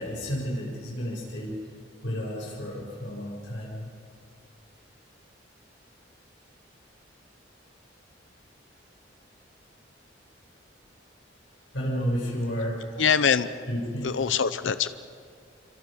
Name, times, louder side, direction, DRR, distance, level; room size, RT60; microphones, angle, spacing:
voice 1, 0.0-1.6 2.0-3.9 11.7-12.8 13.7-14.1, equal, 70° left, -4 dB, 7.0 m, -31 dB
voice 2, 13.0-13.5 14.0-14.9, left 7 dB, 90° left, 13 dB, 0.7 m, -23 dB
28.5 x 25.0 x 5.2 m, 2.2 s
head